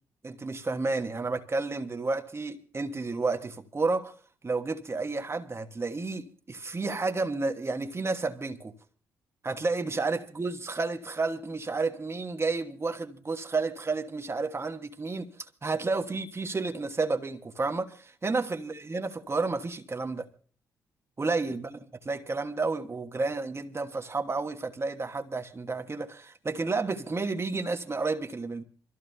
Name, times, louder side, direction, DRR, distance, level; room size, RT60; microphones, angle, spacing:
voice 1, 0.2-4.1 4.4-8.8 9.4-20.3 21.2-21.8 22.0-28.6, right 3 dB, 30° right, 1.2 m, -31 dB
27.5 x 14.0 x 2.3 m
hypercardioid pair, 40°, 8 cm